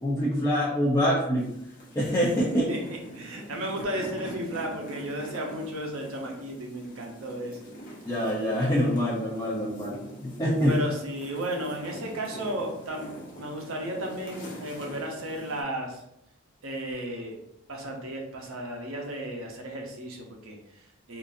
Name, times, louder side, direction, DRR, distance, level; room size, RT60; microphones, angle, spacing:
voice 1, 0.0-1.5 2.0-2.7 8.0-10.8, equal, 15° left, -7 dB, 0.5 m, -25 dB
sound 1, 1.4-15.6, equal, 40° left, 0.8 m, -44 dB
voice 2, 2.5-7.6 10.7-16.0 16.6-17.4 17.7-21.2, right 1 dB, 70° right, 1 dB, 0.7 m, -34 dB
3.7 x 2.5 x 2.5 m, 0.81 s
head